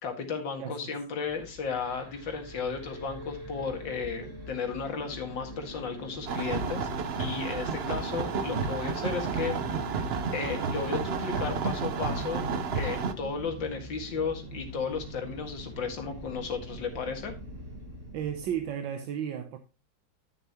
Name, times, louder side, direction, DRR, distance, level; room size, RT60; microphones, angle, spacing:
voice 1, 0.0-6.9 7.2-9.6 9.9-10.1 10.3-12.5 12.7-17.3, left 5 dB, 75° left, 2.5 m, -34 dB
sound 1, 1.3-18.7, equal, 40° right, 2.2 m, -43 dB
sound 2, 6.3-13.1, right 5 dB, 60° right, 0.6 m, -31 dB
voice 2, 18.1-19.6, right 9 dB, 80° right, 1.6 m, -33 dB
11.5 x 6.9 x 2.9 m
omnidirectional pair, 2.0 m